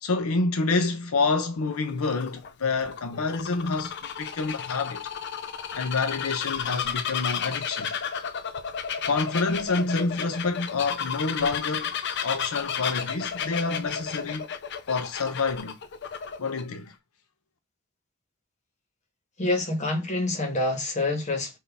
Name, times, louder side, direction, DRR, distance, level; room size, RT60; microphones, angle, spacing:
voice 1, 0.0-5.0 5.7-7.9 9.0-11.9 12.2-14.5 14.9-15.8 16.4-16.9, left 3 dB, 85° left, 0.7 m, -28 dB
Bird vocalization bird call bird song, 1.6-16.6, left 7 dB, 55° left, 0.5 m, -33 dB
voice 2, 19.4-21.6, left 2 dB, 35° left, 1.3 m, -27 dB
5.6 x 2.7 x 3.5 m
head